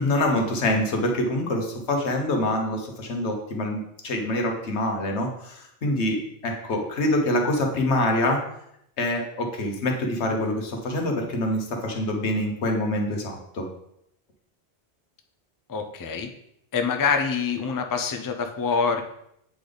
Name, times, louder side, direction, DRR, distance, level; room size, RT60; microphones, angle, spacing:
voice 1, 0.0-8.4 9.0-13.7, left 1 dB, 90° left, 2 dB, 1.3 m, -25 dB
voice 2, 15.7-16.3 16.7-19.0, left 5 dB, 30° left, 6 dB, 0.4 m, -25 dB
8.5 x 3.4 x 3.9 m, 0.76 s
omnidirectional pair, 1.1 m